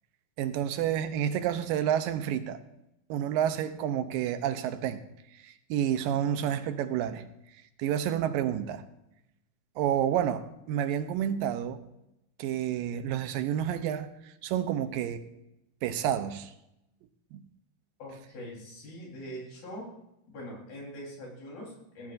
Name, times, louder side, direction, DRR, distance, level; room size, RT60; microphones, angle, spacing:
voice 1, 0.4-2.6 3.1-5.0 5.4-7.2 7.8-8.8 9.8-11.8 12.4-15.3 15.8-16.5 17.3-17.4, right 10 dB, 80° right, 2.4 m, -29 dB
voice 2, 18.0-19.9 20.3-22.1, equal, 80° left, 5.7 m, -43 dB
16.5 x 16.0 x 2.6 m
omnidirectional pair, 4.1 m